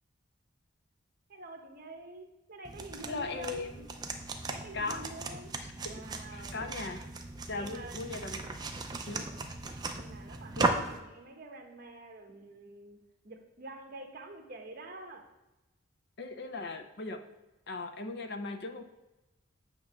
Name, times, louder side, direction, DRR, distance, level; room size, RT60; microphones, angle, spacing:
voice 1, 1.3-3.7 4.5-5.5 5.8-6.7 7.5-8.2 9.9-13.0 13.2-15.2, right 2 dB, 45° right, 3 dB, 1.0 m, -47 dB
sound 1, 2.7-11.0, right 3 dB, 20° right, 0.4 m, -37 dB
voice 2, 3.1-3.9 4.7-5.1 5.6-6.0 6.3-7.0 7.5-8.4 9.1-9.4 10.6-10.7 16.2-17.2 17.7-18.8, left 3 dB, 50° left, 7 dB, 0.6 m, -38 dB
8.8 x 3.0 x 5.9 m, 1.0 s
head